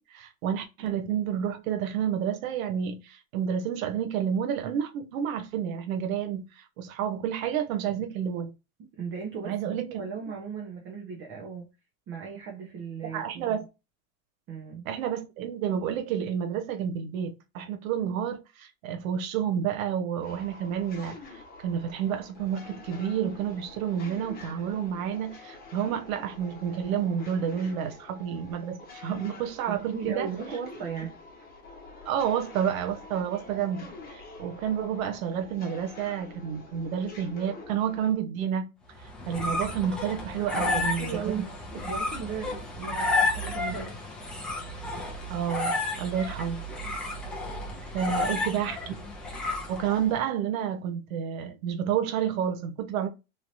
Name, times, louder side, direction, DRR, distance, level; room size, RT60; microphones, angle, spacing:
voice 1, 0.0-8.5 9.4-10.0 13.0-13.7 14.8-30.3 32.1-38.7 39.3-41.5 45.3-46.6 47.9-48.9 49.7-53.1, right 8 dB, 75° right, 0.9 m, -30 dB
voice 2, 9.0-11.7 12.1-13.6 14.5-14.9 29.7-31.2 40.6-41.5 41.8-44.0 46.0-46.2 48.0-48.4, right 6 dB, 30° right, 0.7 m, -37 dB
sound 1, 20.2-38.1, left 3 dB, 20° left, 1.0 m, -47 dB
sound 2, 39.0-50.1, left 2 dB, ahead, 0.4 m, -32 dB
3.2 x 2.9 x 2.5 m
supercardioid pair, 145°, 41 cm